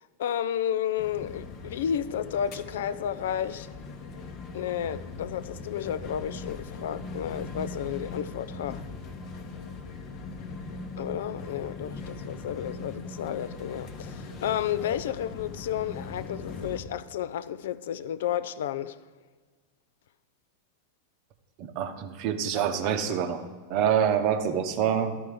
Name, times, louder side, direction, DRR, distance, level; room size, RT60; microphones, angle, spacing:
voice 1, 0.2-3.7 4.5-8.8 11.0-19.0, left 10 dB, 60° left, 0.4 m, -32 dB
sound 1, 1.0-16.8, left 3 dB, 35° left, 0.9 m, -40 dB
voice 2, 21.6-25.2, right 8 dB, 40° right, 0.8 m, -26 dB
13.0 x 4.6 x 5.0 m
figure-of-eight pair, 90°, 0 cm